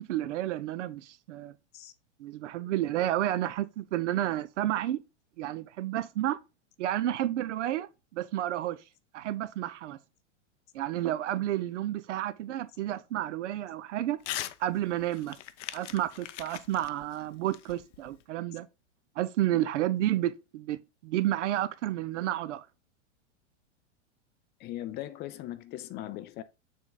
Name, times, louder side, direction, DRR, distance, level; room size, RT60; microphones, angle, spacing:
voice 1, 0.0-1.5 2.2-5.0 5.4-6.4 6.8-8.8 9.1-10.0 10.7-14.2 14.6-15.4 15.7-18.7 19.2-20.8 21.0-22.7, right 13 dB, 70° right, 0.8 m, -31 dB
Crumpling crinkling / Tearing, 14.2-14.6 14.9-18.2, left 13 dB, 75° left, 0.7 m, -40 dB
voice 2, 24.6-26.4, left 14 dB, 30° left, 0.4 m, -39 dB
7.0 x 3.8 x 3.9 m
hypercardioid pair, 125°, 37 cm